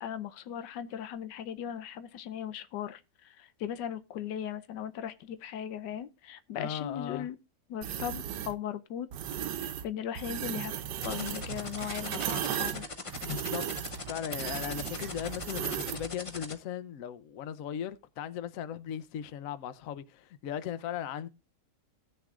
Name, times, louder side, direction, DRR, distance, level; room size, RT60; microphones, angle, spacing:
voice 1, 0.0-3.0 3.2-7.4 7.7-9.1 9.6-10.8 11.0-12.8, left 9 dB, 90° left, 1.4 m, -38 dB
voice 2, 6.6-7.3 13.2-13.7 14.1-21.3, left 9 dB, 60° left, 1.0 m, -37 dB
sound 1, 7.8-8.5 9.1-9.8 10.1-16.1, right 10 dB, 85° right, 1.3 m, -36 dB
sound 2, 11.0-16.5, left 3 dB, 30° left, 0.6 m, -40 dB
18.0 x 6.7 x 2.4 m
omnidirectional pair, 1.8 m